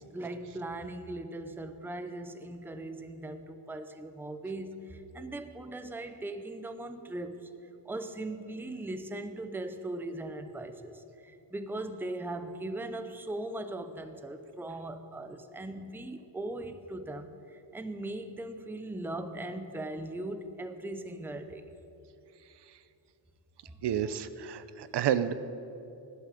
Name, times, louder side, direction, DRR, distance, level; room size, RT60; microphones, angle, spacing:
voice 1, 0.0-7.5 7.8-21.7 23.7-23.9, right 2 dB, 5° right, 8 dB, 0.7 m, -39 dB
voice 2, 23.8-25.3, right 9 dB, 55° right, 13 dB, 0.7 m, -30 dB
16.0 x 11.5 x 7.6 m, 2.8 s
cardioid pair, 150°, 49 cm